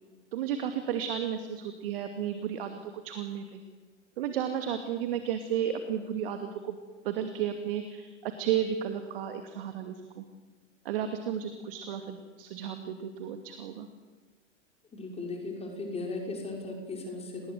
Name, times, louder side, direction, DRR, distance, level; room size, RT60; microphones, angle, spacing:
voice 1, 0.3-3.6 4.2-6.8 7.0-10.2 10.8-13.9, right 9 dB, 50° right, 7 dB, 2.6 m, -33 dB
voice 2, 14.9-17.5, left 3 dB, 15° left, 1 dB, 5.8 m, -37 dB
28.0 x 20.0 x 8.0 m, 1.4 s
figure-of-eight pair, 95°, 36 cm